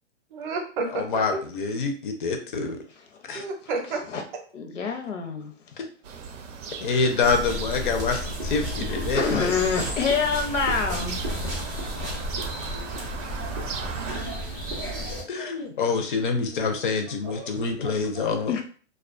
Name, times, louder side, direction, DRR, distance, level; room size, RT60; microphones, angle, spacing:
voice 1, 0.3-1.0 3.3-4.0 13.3-13.9 14.2-14.4 14.8-15.0 15.3-15.6 16.4-16.8 17.2-18.3, right 3 dB, 45° right, 3 dB, 0.6 m, -34 dB
voice 2, 0.9-2.8 3.3-3.4 6.8-9.5 15.3-18.5, left 4 dB, 45° left, 5 dB, 0.4 m, -26 dB
voice 3, 4.5-5.5 5.8-5.9 8.9-11.3 17.3-17.9 18.5-18.6, left 5 dB, 75° left, 4 dB, 0.7 m, -27 dB
sound 1, 6.0-14.2, right 5 dB, 85° right, 0.5 m, -38 dB
sound 2, 7.2-15.2, equal, 15° right, 0.3 m, -32 dB
2.3 x 2.3 x 2.4 m, 0.41 s
hypercardioid pair, 155°, 36 cm